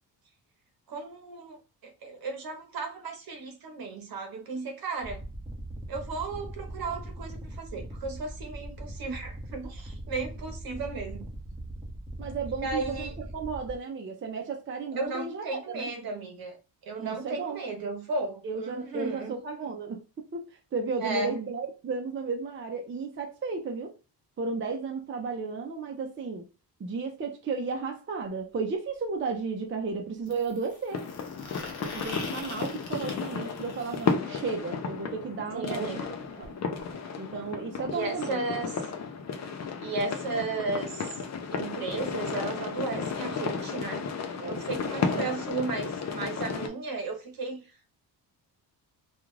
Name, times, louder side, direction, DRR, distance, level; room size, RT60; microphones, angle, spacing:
voice 1, 0.9-5.2 5.9-11.2 12.6-13.1 14.9-16.6 16.8-19.4 21.0-21.3 35.5-36.1 37.9-38.7 39.8-41.1 41.5-44.0 44.4-47.6, right 3 dB, 55° right, 0.9 m, -34 dB
sound 1, 5.0-13.8, right 1 dB, 5° right, 0.9 m, -40 dB
voice 2, 12.2-15.9 17.0-17.6 18.4-23.9 24.4-26.5 26.8-31.1 31.8-36.0 36.4-36.5 37.2-38.4 44.4-44.6 45.0-45.4, right 4 dB, 30° right, 0.6 m, -34 dB
sound 2, 28.2-28.3 30.3-34.1 36.0-36.1 36.4-36.5 36.8-36.9 37.8-37.9, left 3 dB, 60° left, 0.9 m, -43 dB
sound 3, 30.9-46.7, left 5 dB, 40° left, 0.5 m, -33 dB
2.4 x 2.3 x 3.1 m
cardioid pair, 105°, 42 cm